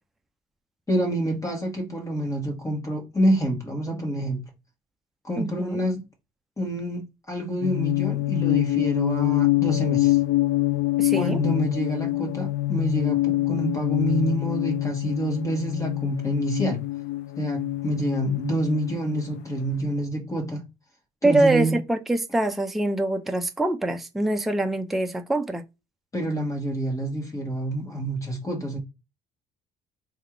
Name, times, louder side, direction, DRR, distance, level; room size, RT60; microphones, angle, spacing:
voice 1, 0.9-4.5 5.2-6.0 6.6-10.2 11.1-16.8 17.4-20.6 21.2-21.8 26.1-28.8, right 1 dB, 20° left, 1.3 m, -27 dB
voice 2, 5.4-5.8 11.0-11.4 21.2-25.6, right 2 dB, ahead, 0.4 m, -24 dB
sound 1, 7.6-19.6, left 17 dB, 75° left, 0.4 m, -25 dB
3.4 x 2.4 x 4.4 m
cardioid pair, 110°, 17 cm